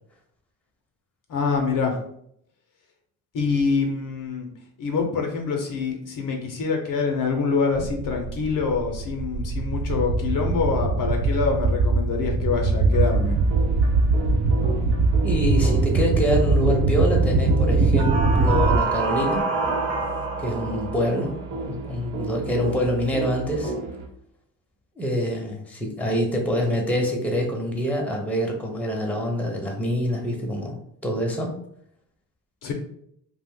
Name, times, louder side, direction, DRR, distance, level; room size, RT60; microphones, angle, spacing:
voice 1, 1.3-2.0 3.3-4.5 4.8-13.4 32.6-32.7, left 5 dB, 50° left, 2 dB, 0.7 m, -25 dB
sound 1, 7.7-18.8, right 3 dB, 40° right, 0.4 m, -22 dB
sound 2, 12.9-24.1, right 4 dB, 75° right, 0.8 m, -30 dB
voice 2, 15.2-19.5 20.4-21.4 21.6-23.7 25.0-30.8 31.0-31.6, equal, 5° left, 1 dB, 0.7 m, -25 dB
2.4 x 2.1 x 3.6 m, 0.70 s
supercardioid pair, 55°, 42 cm